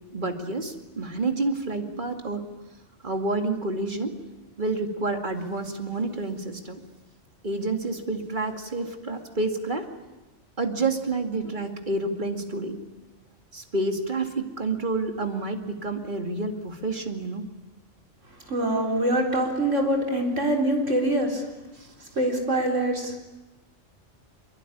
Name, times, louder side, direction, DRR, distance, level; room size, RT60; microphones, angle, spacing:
voice 1, 0.1-2.4 3.0-4.2 4.6-6.8 7.4-9.9 10.6-12.8 13.5-17.5 21.8-21.9, right 2 dB, 40° right, 5 dB, 2.5 m, -29 dB
voice 2, 18.5-21.4 22.2-23.2, right 1 dB, 90° right, 2 dB, 4.4 m, -24 dB
26.0 x 22.5 x 10.0 m, 1.1 s
omnidirectional pair, 1.2 m